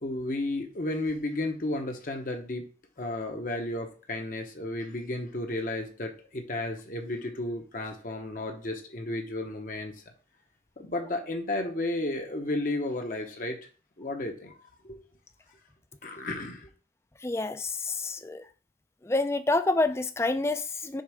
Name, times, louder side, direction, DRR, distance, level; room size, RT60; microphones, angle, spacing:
voice 1, 0.0-2.6 3.0-9.9 10.8-13.6 14.0-14.5 14.8-15.0 16.0-16.7, left 2 dB, 45° left, 3 dB, 0.8 m, -33 dB
voice 2, 17.2-18.4 19.1-21.0, left 2 dB, 15° left, 11 dB, 0.3 m, -28 dB
6.6 x 3.6 x 4.8 m, 0.38 s
head